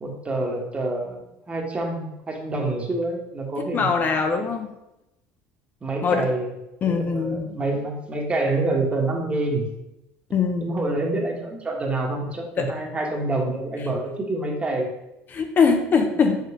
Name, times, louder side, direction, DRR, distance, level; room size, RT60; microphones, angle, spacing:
voice 1, 0.0-4.2 5.8-6.5 6.8-9.7 10.6-14.9 16.1-16.3, right 2 dB, 25° right, 1 dB, 1.3 m, -27 dB
voice 2, 3.7-4.7 6.0-6.2 6.8-7.5 10.3-10.7 12.6-12.7 15.3-16.4, left 5 dB, 35° left, 5 dB, 0.6 m, -22 dB
5.3 x 3.7 x 5.0 m, 0.92 s
supercardioid pair, 110°, 5 cm